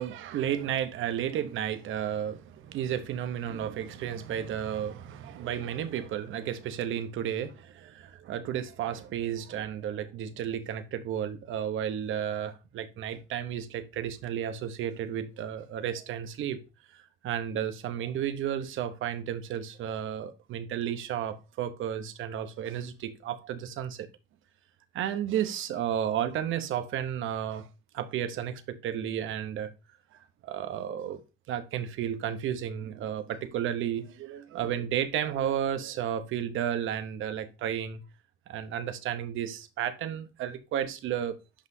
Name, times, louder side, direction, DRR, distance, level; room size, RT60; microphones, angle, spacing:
voice 1, 0.0-16.6 17.2-24.1 24.9-27.7 27.9-29.7 30.4-31.2 31.5-38.0 38.5-41.3, right 9 dB, 80° right, 0.9 m, -32 dB
10.0 x 5.5 x 2.7 m
cardioid pair, 90°, 20 cm